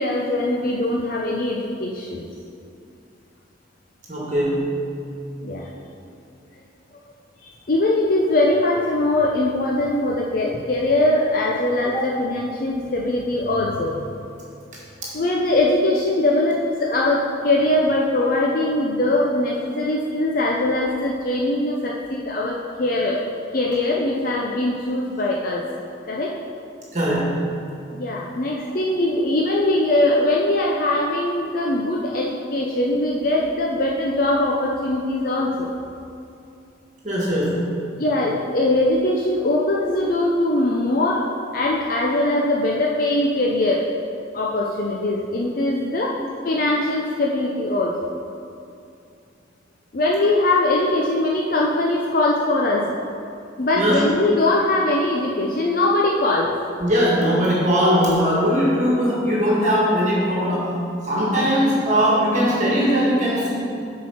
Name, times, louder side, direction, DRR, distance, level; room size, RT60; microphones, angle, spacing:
voice 1, 0.0-2.2 5.4-5.7 7.4-14.1 15.1-23.2 23.5-25.6 26.1-26.3 27.9-35.7 38.0-41.2 41.5-43.8 44.3-46.1 46.4-48.1 49.9-52.9 53.6-56.5, left 2 dB, 50° left, -2 dB, 0.6 m, -21 dB
voice 2, 4.1-4.7 5.9-6.0 11.9-12.0 26.9-27.4 37.0-37.7 46.1-46.2 53.7-53.9 56.8-60.8 61.0-63.6, equal, 40° right, -5 dB, 1.7 m, -20 dB
8.4 x 4.7 x 5.6 m, 2.6 s
head